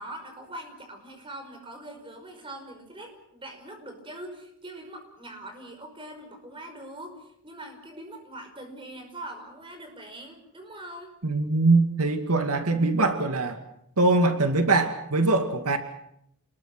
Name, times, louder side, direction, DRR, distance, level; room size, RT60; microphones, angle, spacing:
voice 1, 0.0-11.1, right 1 dB, 25° right, 4 dB, 5.3 m, -42 dB
voice 2, 11.2-13.6 14.0-15.8, right 2 dB, 90° right, 7 dB, 2.3 m, -22 dB
28.5 x 21.0 x 6.3 m, 0.74 s
head